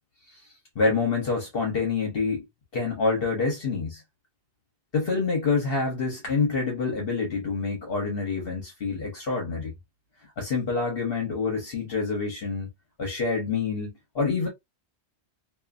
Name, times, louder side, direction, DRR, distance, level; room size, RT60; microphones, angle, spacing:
voice 1, 0.8-2.5 2.7-4.0 4.9-9.7 10.4-12.7 13.0-14.5, left 4 dB, 60° left, 1.0 m, -27 dB
2.5 x 2.5 x 2.3 m
omnidirectional pair, 1.1 m